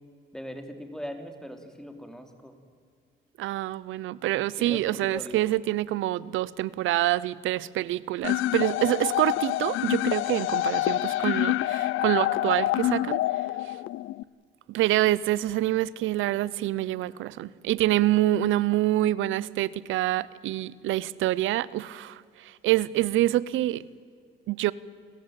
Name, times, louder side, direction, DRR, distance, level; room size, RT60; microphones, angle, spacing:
voice 1, 0.3-2.5 4.6-5.4, equal, 5° left, 3.2 m, -40 dB
voice 2, 3.4-13.2 14.7-23.8 24.5-24.7, right 15 dB, 85° right, 0.7 m, -26 dB
sound 1, 8.2-14.2, left 15 dB, 85° left, 0.5 m, -27 dB
29.0 x 14.5 x 9.0 m
cardioid pair, 90°, 20 cm